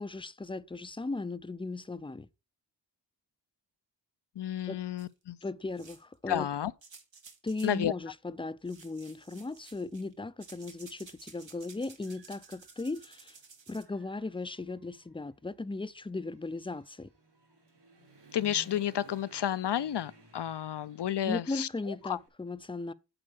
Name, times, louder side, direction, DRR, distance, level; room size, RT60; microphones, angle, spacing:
voice 1, 0.0-2.3 4.7-4.8 5.4-6.5 7.4-13.4 13.7-17.1 21.2-22.9, left 3 dB, 10° left, 0.4 m, -37 dB
voice 2, 4.4-5.4 6.3-6.7 7.6-7.9 18.3-22.2, left 10 dB, 65° left, 0.5 m, -31 dB
sound 1, 5.0-5.1 5.8-6.1 6.8-7.8 8.7-10.1 10.4-13.8, right 5 dB, 85° right, 1.6 m, -54 dB
Human voice / Motorcycle, 11.0-11.1 11.6-13.3 13.7-22.3, right 2 dB, 65° right, 4.4 m, -58 dB
8.8 x 4.3 x 6.4 m
wide cardioid pair, 80°, 44 cm